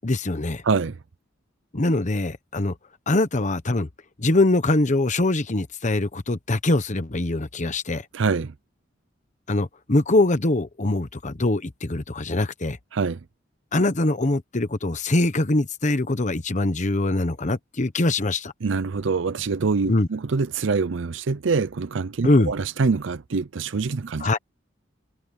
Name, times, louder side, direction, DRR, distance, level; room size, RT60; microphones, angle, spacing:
voice 1, 0.0-0.6 1.7-2.7 3.1-3.9 4.2-8.1 9.5-12.8 13.7-18.5 19.9-20.1 22.2-22.5 24.2-24.4, left 2 dB, 40° left, 1.1 m, -23 dB
voice 2, 0.6-1.0 8.1-8.5 12.9-13.2 18.6-24.3, right 4 dB, 70° right, 0.6 m, -25 dB
head